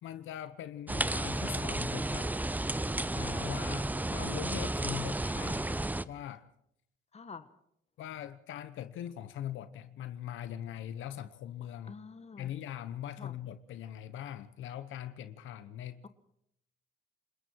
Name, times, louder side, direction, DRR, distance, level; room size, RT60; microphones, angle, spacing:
voice 1, 0.0-2.3 3.1-6.5 8.0-11.9 12.4-16.0, left 11 dB, 80° left, 1.1 m, -41 dB
sound 1, 0.9-6.1, right 1 dB, 10° right, 0.7 m, -33 dB
voice 2, 7.1-7.5 11.9-12.5 13.1-13.4 16.0-16.1, left 5 dB, 30° left, 1.5 m, -47 dB
28.5 x 20.0 x 4.7 m
cardioid pair, 90°, 20 cm